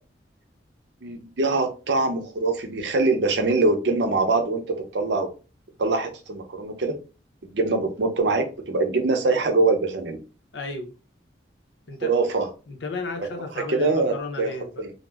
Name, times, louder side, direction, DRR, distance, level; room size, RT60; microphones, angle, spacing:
voice 1, 1.0-5.3 5.8-7.0 7.4-10.2 12.0-12.5 13.5-14.5 14.8-14.9, right 3 dB, 70° right, 0.6 m, -23 dB
voice 2, 10.5-10.9 11.9-12.1 12.7-14.8, left 3 dB, 75° left, 0.7 m, -34 dB
2.4 x 2.1 x 3.3 m
head